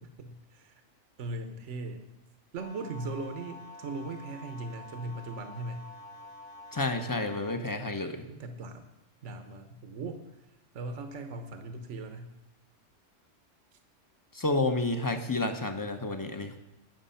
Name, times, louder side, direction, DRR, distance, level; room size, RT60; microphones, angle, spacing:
voice 1, 0.0-0.8 1.2-2.1 2.5-5.9 8.3-8.8 9.2-10.5 10.7-12.3 13.7-13.8, right 2 dB, 70° right, 7 dB, 1.3 m, -39 dB
sound 1, 2.6-7.6, left 1 dB, 70° left, 1.4 m, -48 dB
voice 2, 6.7-8.2 14.3-16.6, left 2 dB, 20° left, 7 dB, 0.9 m, -30 dB
19.5 x 6.8 x 5.7 m, 0.92 s
omnidirectional pair, 1.3 m